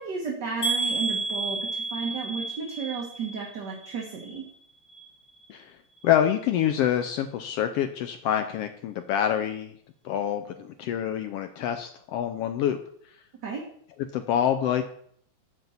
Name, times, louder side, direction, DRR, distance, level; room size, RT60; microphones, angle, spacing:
voice 1, 0.0-4.4 13.4-13.6, right 5 dB, 45° right, -2 dB, 1.6 m, -33 dB
sound 1, 0.6-4.6 4.9-5.5 6.0-6.1 6.4-6.5, right 3 dB, 35° left, 2.4 m, -32 dB
voice 2, 6.0-9.7 10.0-12.8 14.1-14.9, left 10 dB, 80° left, 7 dB, 1.4 m, -26 dB
8.0 x 5.6 x 7.1 m, 0.64 s
omnidirectional pair, 3.3 m